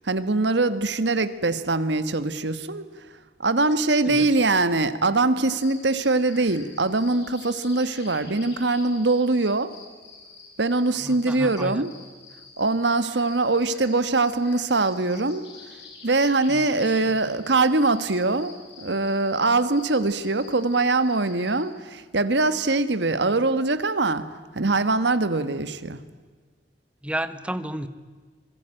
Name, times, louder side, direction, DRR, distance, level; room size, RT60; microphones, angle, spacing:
voice 1, 0.0-2.8 3.4-9.7 10.6-11.9 12.6-15.5 16.0-24.3 24.5-26.0, right 3 dB, 70° right, 12 dB, 1.4 m, -23 dB
sound 1, 5.5-21.7, left 4 dB, 70° left, 6.8 m, -47 dB
voice 2, 11.0-11.9 16.5-16.6 27.0-27.9, right 1 dB, 5° right, 12 dB, 1.0 m, -31 dB
26.0 x 20.5 x 8.9 m, 1.4 s
head